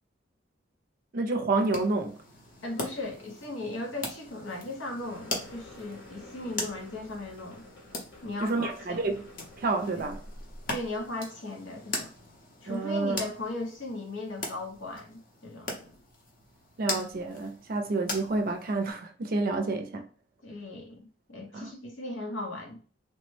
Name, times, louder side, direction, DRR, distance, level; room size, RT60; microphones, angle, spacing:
voice 1, 1.1-2.2 8.4-9.2 9.6-10.2 12.7-13.3 16.8-20.1 21.5-21.7, right 3 dB, 50° right, 0.4 m, -29 dB
sound 1, 1.5-18.9, left 2 dB, 45° left, 0.7 m, -41 dB
voice 2, 2.6-7.6 8.2-9.1 9.9-10.1 10.7-12.1 12.6-15.9 20.4-21.0 21.3-22.8, left 2 dB, 90° left, 0.8 m, -37 dB
sound 2, 5.0-11.1, left 1 dB, 65° left, 1.0 m, -49 dB
3.2 x 2.1 x 3.1 m
head